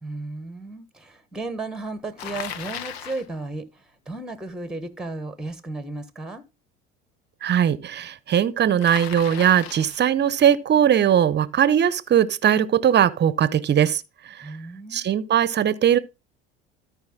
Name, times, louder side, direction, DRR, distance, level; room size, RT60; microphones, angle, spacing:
voice 1, 0.0-6.4 14.4-15.1, right 2 dB, ahead, 1.2 m, -34 dB
Bicycle, 2.2-3.3 8.8-10.1, left 9 dB, 80° left, 0.9 m, -36 dB
voice 2, 7.4-14.5 14.9-16.0, right 9 dB, 35° right, 0.8 m, -20 dB
13.0 x 5.0 x 3.7 m
hypercardioid pair, 75°, 31 cm